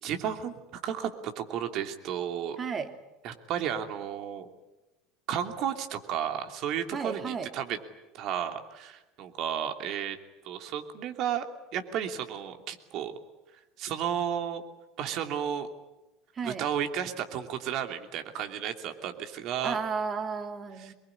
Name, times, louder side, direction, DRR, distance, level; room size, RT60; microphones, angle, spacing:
voice 1, 0.0-2.6 3.2-4.5 5.3-7.8 8.1-10.2 10.4-11.4 11.7-13.1 13.8-14.6 15.0-15.7 16.4-19.8 20.8-20.9, right 9 dB, 55° right, 7 dB, 2.8 m, -33 dB
voice 2, 2.6-2.9 6.9-7.5 16.4-16.6 19.6-20.9, right 5 dB, 35° right, 6 dB, 3.1 m, -33 dB
24.5 x 22.0 x 10.0 m, 1.0 s
hypercardioid pair, 80°, 0 cm